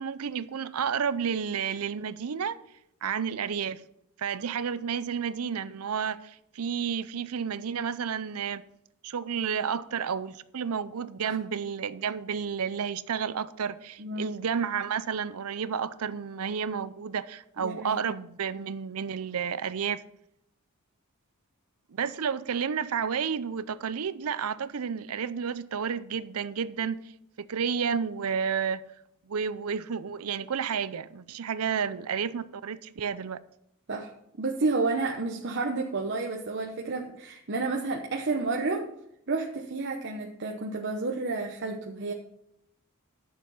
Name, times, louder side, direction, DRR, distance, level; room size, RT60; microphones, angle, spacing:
voice 1, 0.0-2.6 3.0-3.8 4.2-8.6 9.0-20.0 21.9-27.0 27.4-28.8 29.3-33.4, right 7 dB, 75° right, 0.6 m, -31 dB
voice 2, 14.0-14.3 17.6-18.0 33.9-34.1 34.4-38.9 39.3-42.1, right 3 dB, 55° right, 0.9 m, -30 dB
11.0 x 6.9 x 5.6 m
head